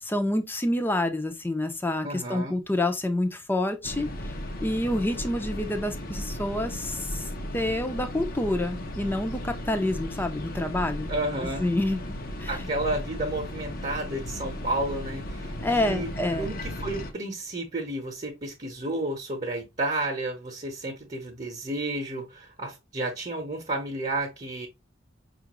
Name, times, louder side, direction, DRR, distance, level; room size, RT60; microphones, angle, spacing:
voice 1, 0.0-4.1 4.6-7.2 7.5-11.1 11.4-12.0 12.4-12.6 15.6-16.5, left 1 dB, 10° left, 0.6 m, -28 dB
voice 2, 2.0-2.6 11.1-11.7 12.5-16.1 16.4-24.7, right 2 dB, 35° right, 0.9 m, -31 dB
sound 1, 3.8-17.1, left 1 dB, 50° left, 0.7 m, -36 dB
5.5 x 2.5 x 3.0 m
head